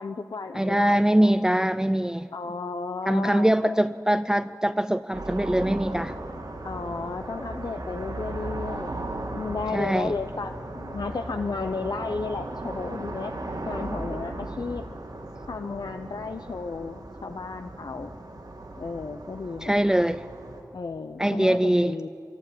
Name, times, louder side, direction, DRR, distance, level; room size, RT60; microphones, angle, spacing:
voice 1, 0.0-1.3 2.3-3.8 6.6-13.3 13.7-14.9 15.5-18.1 18.8-19.8 20.7-22.1, left 4 dB, 75° left, 8 dB, 0.6 m, -33 dB
voice 2, 0.5-2.3 3.1-6.2 9.7-10.1 19.6-20.2 21.2-22.0, right 1 dB, 10° right, 12 dB, 0.4 m, -23 dB
sound 1, 5.1-20.6, right 2 dB, 85° right, 2.6 m, -37 dB
24.0 x 12.0 x 9.8 m, 2.8 s
wide cardioid pair, 50°, 7 cm